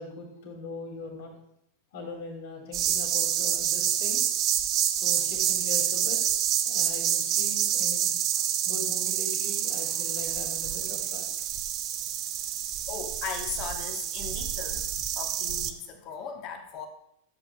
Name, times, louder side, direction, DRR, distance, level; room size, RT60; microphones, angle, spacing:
voice 1, 0.0-1.3 1.9-4.4 4.9-6.2 6.6-8.1 8.6-11.2, left 2 dB, 55° left, 1 dB, 2.5 m, -40 dB
sound 1, 2.7-15.7, right 10 dB, 35° right, 0.6 m, -28 dB
voice 2, 12.9-14.9 15.1-16.9, left 6 dB, 40° left, 4 dB, 1.1 m, -38 dB
13.0 x 7.9 x 2.3 m, 0.73 s
figure-of-eight pair, 90°, 0 cm